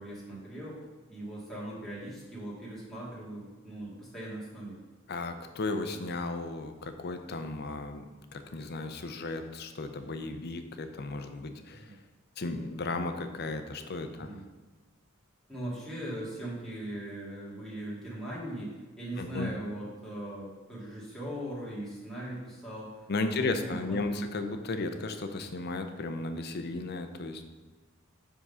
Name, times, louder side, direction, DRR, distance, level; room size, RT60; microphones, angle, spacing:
voice 1, 0.0-4.8 11.7-11.9 14.2-14.4 15.5-24.2, right 1 dB, ahead, -8 dB, 2.1 m, -40 dB
voice 2, 5.1-8.1 8.3-11.8 12.4-14.3 19.2-19.5 23.1-27.4, left 3 dB, 50° left, 7 dB, 0.6 m, -34 dB
7.5 x 3.7 x 5.4 m, 1.3 s
head